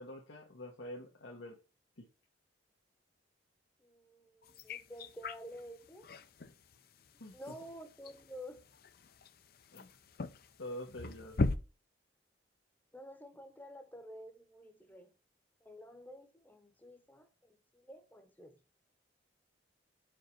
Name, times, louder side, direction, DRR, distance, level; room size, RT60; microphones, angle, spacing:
voice 1, 0.0-1.6 2.0-2.1 7.2-7.4 9.7-9.9 10.6-11.4, left 1 dB, 85° left, 1.3 m, -46 dB
voice 2, 3.8-6.1 7.3-8.7 12.9-15.1 15.6-18.6, equal, 10° left, 0.9 m, -51 dB
sound 1, 4.4-11.6, left 3 dB, 55° left, 0.5 m, -40 dB
5.2 x 5.1 x 5.8 m
head